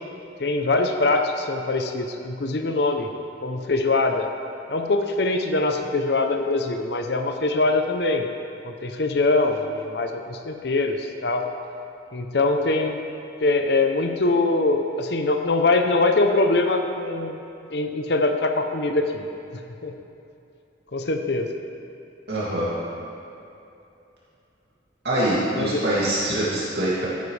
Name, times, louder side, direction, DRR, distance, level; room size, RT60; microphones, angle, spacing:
voice 1, 0.4-3.1 3.4-4.3 4.7-8.3 8.6-11.5 12.1-13.0 13.4-17.4 17.7-19.3 19.8-19.9 20.9-21.5 25.5-25.8, left 2 dB, 60° left, 5 dB, 0.7 m, -23 dB
voice 2, 22.3-22.7 25.0-27.1, right 1 dB, 60° right, -9 dB, 2.5 m, -24 dB
14.5 x 9.4 x 3.3 m, 2.7 s
head